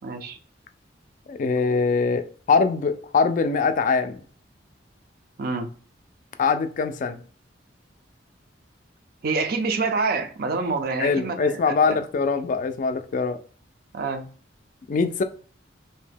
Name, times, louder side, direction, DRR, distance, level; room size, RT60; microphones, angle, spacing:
voice 1, 0.0-0.4 5.4-5.7 9.2-12.0 13.9-14.3, right 4 dB, 50° right, 0.4 m, -27 dB
voice 2, 1.3-4.2 6.4-7.2 11.0-13.4 14.9-15.2, left 4 dB, 45° left, 0.3 m, -23 dB
2.7 x 2.1 x 3.3 m
head